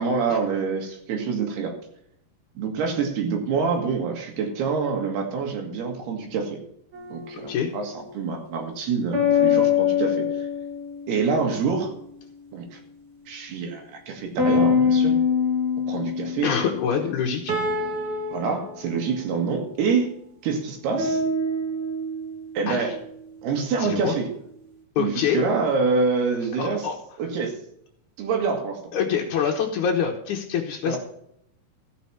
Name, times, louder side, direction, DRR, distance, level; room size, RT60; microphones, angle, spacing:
voice 1, 0.0-1.8 2.6-6.6 7.1-10.5 11.1-11.9 12.5-12.8 13.3-15.2 15.9-16.5 18.3-20.1 20.4-21.2 22.6-23.0 23.4-24.3 25.0-26.9 27.2-27.6 28.2-28.8 30.9-31.0, right 5 dB, 80° right, 2 dB, 3.8 m, -26 dB
sound 1, 6.9-8.2 9.1-11.2 14.4-18.8 21.0-22.8, left 5 dB, 50° right, 1.2 m, -24 dB
voice 2, 16.4-17.5 22.7-22.9 23.8-24.2 25.0-25.4 26.6-27.0 28.9-31.0, left 7 dB, 65° left, 0 dB, 2.1 m, -25 dB
14.5 x 6.2 x 5.8 m, 0.73 s
omnidirectional pair, 4.6 m